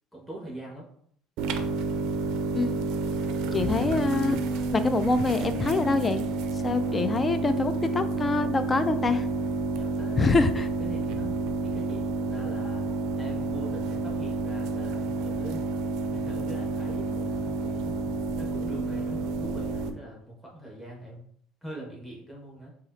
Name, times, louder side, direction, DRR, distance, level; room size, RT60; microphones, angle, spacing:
voice 1, 0.1-0.9 9.7-10.4 10.8-12.8 13.2-15.7 16.1-18.0 18.4-21.2 21.6-22.7, right 1 dB, 5° left, -4 dB, 1.4 m, -42 dB
sound 1, 1.4-19.9, right 3 dB, 70° right, 0.4 m, -29 dB
voice 2, 2.5-3.1 3.5-4.4 4.7-6.2 6.6-9.2 10.2-10.7, left 3 dB, 25° left, 11 dB, 0.4 m, -25 dB
4.0 x 2.4 x 2.7 m, 0.63 s
supercardioid pair, 85°, 0 cm